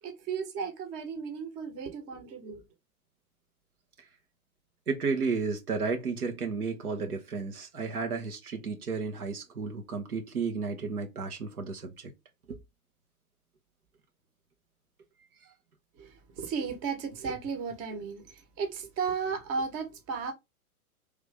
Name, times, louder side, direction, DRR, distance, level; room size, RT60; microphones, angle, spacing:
voice 1, 0.0-2.6 16.0-20.3, right 5 dB, 35° right, 1.3 m, -35 dB
voice 2, 4.9-12.1 12.5-12.6, right 4 dB, 85° right, 1.2 m, -33 dB
3.4 x 3.1 x 3.4 m
hypercardioid pair, 110°, 43 cm